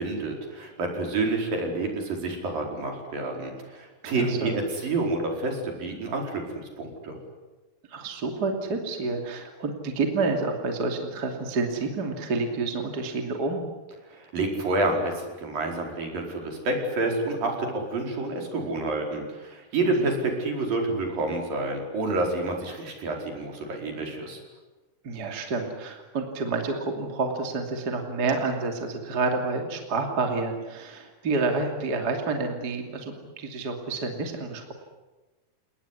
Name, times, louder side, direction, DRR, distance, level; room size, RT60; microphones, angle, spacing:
voice 1, 0.0-7.2 14.1-24.4, right 2 dB, 60° right, 2 dB, 6.4 m, -28 dB
voice 2, 4.0-4.6 7.9-13.6 19.8-20.1 25.0-34.7, right 3 dB, 30° right, 3 dB, 2.8 m, -29 dB
29.5 x 19.5 x 9.9 m, 1.2 s
omnidirectional pair, 4.5 m